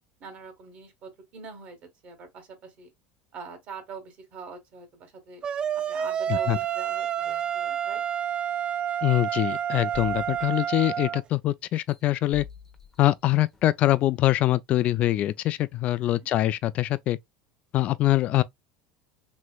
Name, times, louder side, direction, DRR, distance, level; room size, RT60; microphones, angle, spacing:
voice 1, 0.2-1.8 2.0-2.9 3.3-5.4 5.7-8.0 16.0-16.3, right 5 dB, 50° right, 1.4 m, -44 dB
sound 1, 5.4-11.2, right 9 dB, 35° right, 0.4 m, -29 dB
voice 2, 9.0-12.5 13.0-17.2 17.7-18.4, left 15 dB, 50° left, 0.3 m, -24 dB
sound 2, 9.9-11.2 11.7-13.9 14.4-14.5, left 6 dB, 15° left, 0.8 m, -47 dB
3.1 x 3.0 x 2.2 m
supercardioid pair, 110°, 3 cm